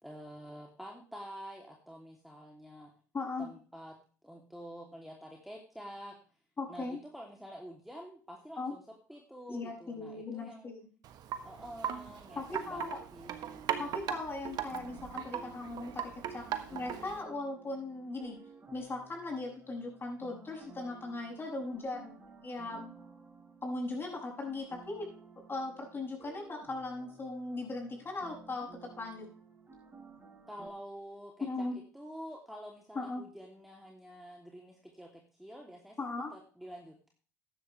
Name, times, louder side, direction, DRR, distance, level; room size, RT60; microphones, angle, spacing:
voice 1, 0.0-2.9 3.4-4.0 4.2-6.2 6.7-8.8 9.1-10.7 11.4-14.0 21.8-21.9 30.5-37.1, equal, ahead, -1 dB, 3.0 m, -48 dB
voice 2, 3.1-3.5 6.6-7.0 8.6-8.7 9.5-10.8 12.3-13.0 13.8-18.4 18.7-22.2 22.4-22.9 23.6-25.2 25.5-29.3 31.5-31.8 32.9-33.3 36.0-36.3, left 2 dB, 30° left, -1 dB, 7.3 m, -38 dB
Wind chime, 11.0-17.2, right 9 dB, 60° right, 1.4 m, -39 dB
sound 1, 14.7-30.7, right 5 dB, 25° right, 3.2 m, -55 dB
14.0 x 11.0 x 3.4 m, 0.39 s
hypercardioid pair, 70°, 8 cm